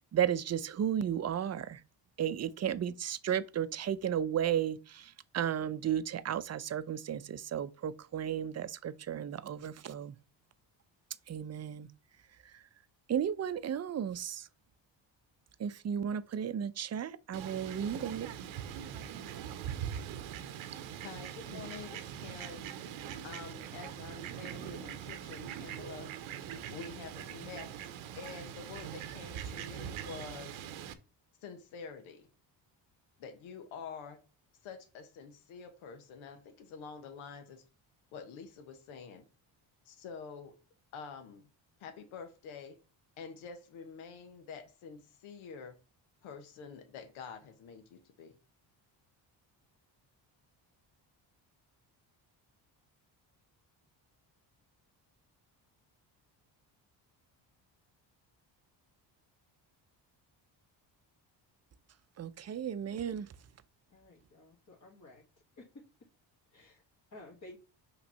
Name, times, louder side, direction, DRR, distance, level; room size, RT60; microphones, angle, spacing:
voice 1, 0.1-1.8 2.2-10.2 11.3-11.9 12.4-12.6 13.1-14.5 15.6-18.3 62.2-63.3, right 9 dB, 35° right, 0.6 m, -34 dB
Fowl, 17.3-30.9, right 9 dB, 85° right, 0.9 m, -42 dB
voice 2, 21.0-22.7 23.2-26.2 26.7-27.7 28.1-30.6 31.4-32.3 33.2-34.2 34.6-37.6 38.1-39.2 39.8-40.6 40.9-41.5 41.8-42.8 43.2-45.8 46.2-48.4, left 6 dB, 90° left, 1.1 m, -47 dB
voice 3, 63.9-65.2 65.6-65.8 66.5-66.8 67.1-67.6, left 2 dB, 40° left, 1.8 m, -53 dB
5.8 x 3.3 x 5.5 m
cardioid pair, 80°, 46 cm